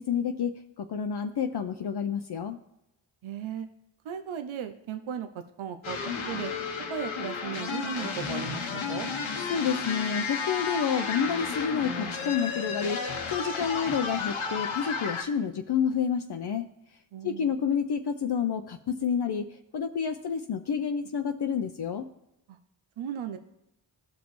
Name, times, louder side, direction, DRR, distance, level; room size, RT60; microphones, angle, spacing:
voice 1, 0.0-2.6 9.5-16.7 17.2-22.1, left 7 dB, 55° left, 6 dB, 0.6 m, -29 dB
voice 2, 3.2-3.7 4.0-5.3 5.6-6.5 6.9-9.1 17.1-17.5 22.5-22.6 23.0-23.4, right 8 dB, 80° right, 8 dB, 0.6 m, -36 dB
sound 1, 5.8-15.2, left 5 dB, 80° left, 1.0 m, -32 dB
15.0 x 5.2 x 3.1 m, 0.86 s
cardioid pair, 45°, 47 cm